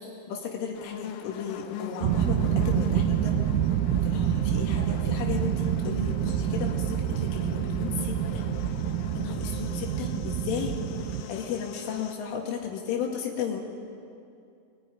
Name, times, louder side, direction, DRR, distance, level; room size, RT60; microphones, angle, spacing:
voice 1, 0.3-3.4 4.0-8.4 9.2-10.8 11.3-13.6, left 7 dB, 75° left, 1 dB, 4.4 m, -34 dB
sound 1, 0.7-12.1, left 10 dB, 90° left, 3.8 m, -41 dB
sound 2, 2.0-11.2, right 10 dB, 90° right, 3.6 m, -27 dB
22.5 x 20.5 x 10.0 m, 2.5 s
omnidirectional pair, 5.9 m